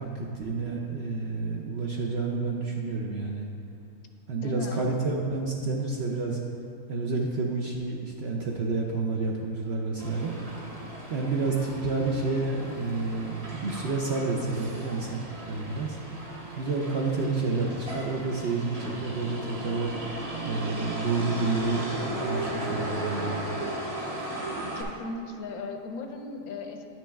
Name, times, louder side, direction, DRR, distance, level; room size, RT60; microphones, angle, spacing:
voice 1, 0.0-3.5 4.3-6.4 6.9-10.3 11.1-15.2 15.5-16.0 16.5-19.9 20.4-23.4, right 3 dB, 60° right, -1 dB, 0.7 m, -29 dB
voice 2, 4.3-4.9 24.8-26.9, left 3 dB, 75° left, 4 dB, 1.1 m, -37 dB
Motor vehicle (road), 10.0-24.8, right 1 dB, 30° right, 0.9 m, -36 dB
9.5 x 6.1 x 3.4 m, 2.5 s
omnidirectional pair, 1.6 m